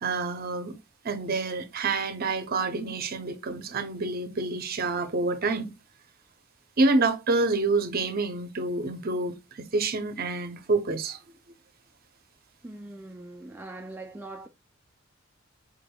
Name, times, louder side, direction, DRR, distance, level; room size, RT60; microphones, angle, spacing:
voice 1, 0.0-0.7 1.0-5.7 6.8-11.2, right 3 dB, 45° right, 0.6 m, -27 dB
voice 2, 12.6-14.5, right 2 dB, 10° right, 0.3 m, -41 dB
4.7 x 3.4 x 2.2 m
head